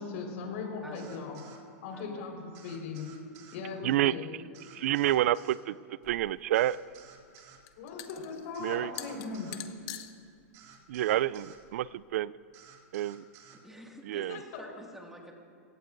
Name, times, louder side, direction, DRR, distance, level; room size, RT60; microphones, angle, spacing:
voice 1, 0.0-1.4 1.8-3.1 3.5-4.2 7.8-9.6 14.3-14.6, left 4 dB, 60° left, 1 dB, 4.4 m, -39 dB
voice 2, 0.8-1.3 1.9-2.4 13.5-15.3, equal, 5° right, 0 dB, 2.1 m, -49 dB
sound 1, 0.9-1.6 2.5-3.6 4.5-5.6 6.5-7.6 8.5-9.6 10.5-11.6 12.5-13.6, right 7 dB, 40° right, 2.3 m, -54 dB
voice 3, 3.8-4.1 4.7-5.8 6.1-6.8 8.6-8.9 10.9-12.3 12.9-13.2 14.0-14.4, right 13 dB, 65° right, 20 dB, 0.3 m, -28 dB
sound 2, 6.0-12.2, left 13 dB, 40° left, 1.1 m, -47 dB
23.0 x 17.5 x 2.6 m, 2.2 s
hypercardioid pair, 120°, 8 cm